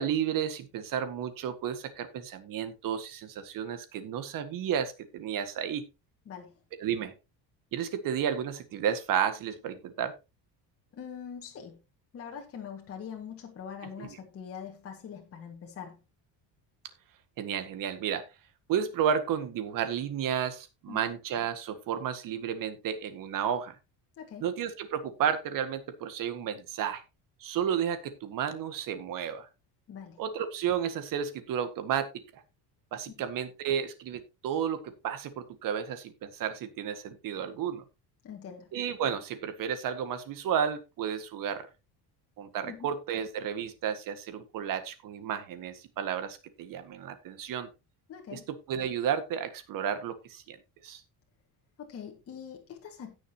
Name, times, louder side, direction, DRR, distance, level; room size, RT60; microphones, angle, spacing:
voice 1, 0.0-5.8 6.8-7.1 7.7-10.1 14.0-14.1 17.4-18.2 18.7-23.8 24.4-27.0 27.4-29.5 30.2-32.1 32.9-37.8 38.7-41.7 42.4-47.7 48.3-48.4 48.7-50.6 50.8-51.0, right 8 dB, 55° right, 1.8 m, -32 dB
voice 2, 6.3-6.6 10.9-11.8 12.1-16.0 20.9-21.1 24.2-24.5 29.9-30.2 38.2-38.8 42.6-42.9 48.1-48.5 51.8-53.1, left 7 dB, 35° left, 1.8 m, -43 dB
16.5 x 6.7 x 2.9 m
cardioid pair, 175°, 40 cm